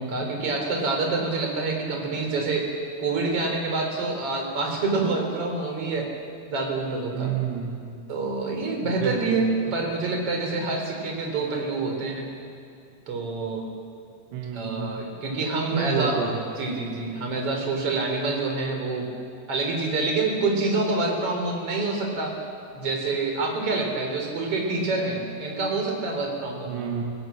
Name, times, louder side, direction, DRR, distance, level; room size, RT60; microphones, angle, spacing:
voice 1, 0.0-2.7 3.0-6.1 6.5-7.3 8.1-12.3 13.1-13.7 14.5-16.2 16.6-19.1 19.5-22.4 22.7-26.8, right 3 dB, 35° right, 2 dB, 4.2 m, -27 dB
voice 2, 7.1-7.8 8.9-9.6 14.3-14.9 15.7-16.5 26.7-27.0, right 6 dB, 90° right, -1 dB, 4.1 m, -29 dB
29.0 x 16.5 x 7.4 m, 2.5 s
omnidirectional pair, 5.0 m